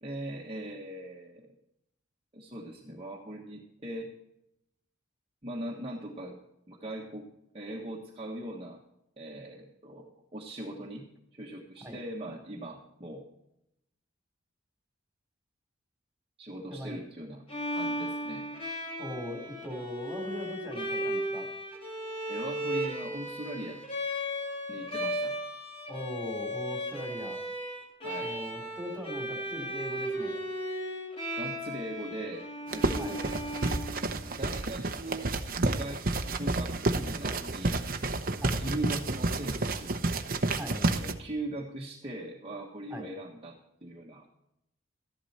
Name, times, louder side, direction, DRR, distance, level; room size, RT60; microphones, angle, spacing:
voice 1, 0.0-1.5 2.3-4.1 5.4-6.4 6.7-7.3 7.5-8.8 9.2-11.0 11.3-13.3 16.4-17.4 17.7-18.5 22.3-23.8 24.7-25.4 28.0-28.3 31.3-33.2 34.4-35.3 35.6-37.8 38.5-40.0 41.0-44.3, right 1 dB, 25° right, -2 dB, 1.4 m, -40 dB
Bowed string instrument, 17.5-34.4, equal, 30° left, 2.8 m, -36 dB
voice 2, 19.0-21.5 25.9-27.4 28.2-30.3 33.0-33.2 38.3-38.6 40.5-40.8 42.9-43.0, equal, 5° right, 2 dB, 3.3 m, -40 dB
sound 1, 32.7-41.1, right 2 dB, 45° right, 0.9 m, -30 dB
13.5 x 11.5 x 4.3 m, 0.82 s
head